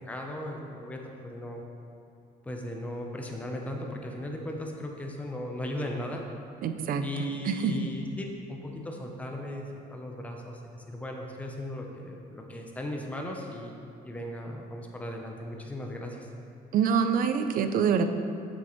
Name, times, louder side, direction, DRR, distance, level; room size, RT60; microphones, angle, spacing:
voice 1, 0.1-1.6 2.4-6.2 7.0-13.8 14.0-16.3, left 1 dB, 10° left, 1 dB, 0.7 m, -37 dB
voice 2, 6.6-7.0 7.5-7.7 16.7-18.0, right 7 dB, 55° right, 9 dB, 0.5 m, -25 dB
7.3 x 6.1 x 3.1 m, 2.6 s
cardioid pair, 110°, 17 cm